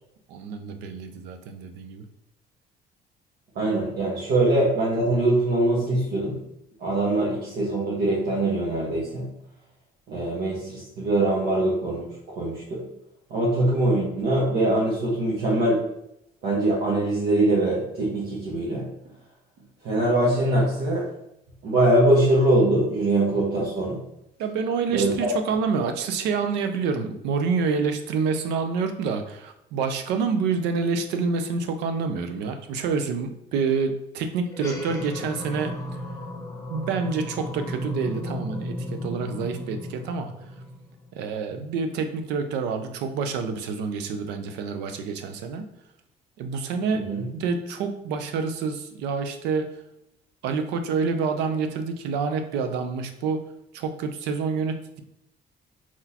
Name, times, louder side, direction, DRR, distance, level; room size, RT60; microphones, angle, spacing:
voice 1, 0.3-2.1 24.4-36.0 36.6-40.3 41.1-45.7 46.4-49.8 50.4-53.4 53.7-55.0, right 5 dB, 90° right, 7 dB, 0.6 m, -27 dB
voice 2, 3.5-6.4 6.8-9.3 10.1-12.9 13.3-15.8 16.4-18.9 19.8-21.1 21.6-24.0 24.9-25.3 46.9-47.2, right 1 dB, 75° right, -6 dB, 1.4 m, -23 dB
sound 1, 34.5-41.2, left 1 dB, 20° left, 1.0 m, -34 dB
4.4 x 4.0 x 2.9 m, 0.80 s
cardioid pair, 110°, 17 cm